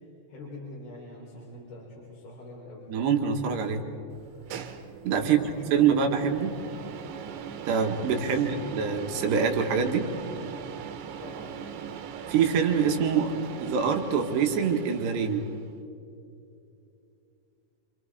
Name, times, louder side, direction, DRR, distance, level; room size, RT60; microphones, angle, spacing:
voice 1, 0.3-2.9 5.2-6.2 6.6-6.8 8.3-8.6 11.2-11.6, left 2 dB, 55° left, -4 dB, 6.1 m, -43 dB
voice 2, 2.9-3.8 5.1-5.4 5.7-6.5 7.7-10.1 12.3-13.3 13.6-15.4, right 6 dB, 70° right, 3 dB, 3.8 m, -25 dB
sound 1, 4.1-15.7, right 7 dB, 90° right, 3.7 m, -40 dB
29.5 x 26.5 x 5.0 m, 2.6 s
omnidirectional pair, 5.2 m